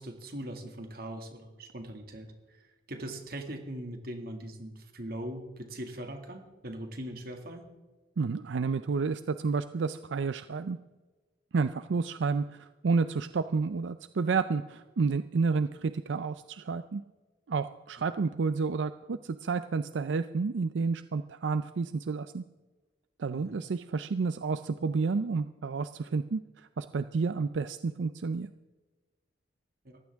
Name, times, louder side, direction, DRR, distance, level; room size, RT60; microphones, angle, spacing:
voice 1, 0.0-7.7 23.3-23.6 29.8-30.0, right 1 dB, 55° right, 4 dB, 2.1 m, -41 dB
voice 2, 8.2-10.8 11.5-17.0 17.5-22.4 23.2-28.5, right 4 dB, 85° right, 12 dB, 0.5 m, -30 dB
18.5 x 15.0 x 3.5 m, 1.2 s
head